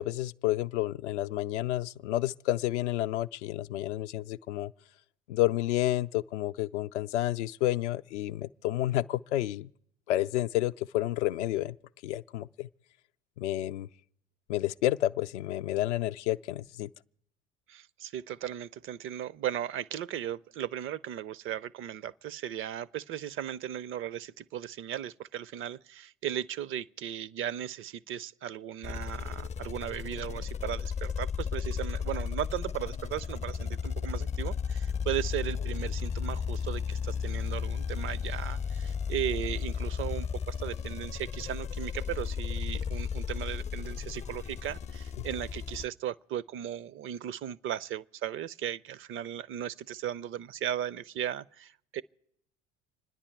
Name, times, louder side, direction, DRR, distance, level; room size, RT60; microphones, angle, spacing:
voice 1, 0.0-4.7 5.3-9.7 10.1-11.8 12.0-12.7 13.4-13.9 14.5-16.9, left 15 dB, 75° left, 0.5 m, -30 dB
voice 2, 17.7-52.0, right 10 dB, 35° right, 0.5 m, -36 dB
sound 1, 28.8-45.9, left 6 dB, 20° left, 0.5 m, -34 dB
26.5 x 10.0 x 4.6 m
figure-of-eight pair, 65°, 36 cm